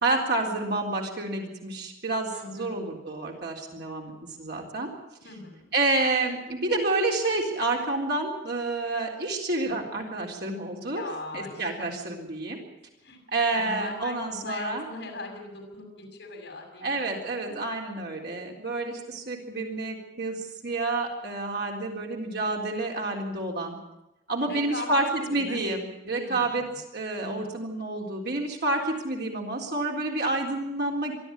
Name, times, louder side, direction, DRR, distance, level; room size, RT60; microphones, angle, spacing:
voice 1, 0.0-4.1 4.4-4.9 5.7-11.1 11.3-12.6 13.3-14.8 16.8-23.8 24.3-31.1, right 2 dB, 55° right, 1 dB, 3.9 m, -29 dB
voice 2, 2.3-2.7 5.2-5.6 10.9-11.9 13.0-13.2 13.5-17.1 17.5-17.6 24.4-25.6 26.1-26.7 27.2-27.6, left 3 dB, 60° left, 2 dB, 6.6 m, -39 dB
23.5 x 14.0 x 8.9 m, 0.94 s
head